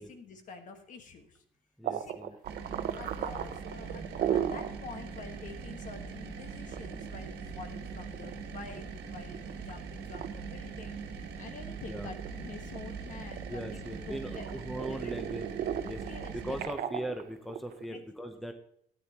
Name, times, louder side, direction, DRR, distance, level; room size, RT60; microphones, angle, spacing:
voice 1, 0.0-1.4 1.9-2.1 2.7-11.0 11.4-14.6 14.9-15.0 16.0-16.6 17.9-18.0, left 4 dB, 50° left, 6 dB, 1.5 m, -47 dB
voice 2, 1.8-2.4 11.9-12.1 13.5-15.5 15.8-16.0 16.3-18.5, right 1 dB, ahead, 6 dB, 0.7 m, -39 dB
sound 1, 1.8-4.8 5.2-5.3 5.6-5.7 6.5-8.8 9.3-9.7 10.1-10.3 10.8-11.8 12.1-13.9 14.3-17.8, right 9 dB, 55° right, 0.7 m, -36 dB
sound 2, 2.4-16.7, right 5 dB, 75° right, 1.3 m, -42 dB
13.5 x 9.6 x 2.9 m, 0.69 s
cardioid pair, 110°, 17 cm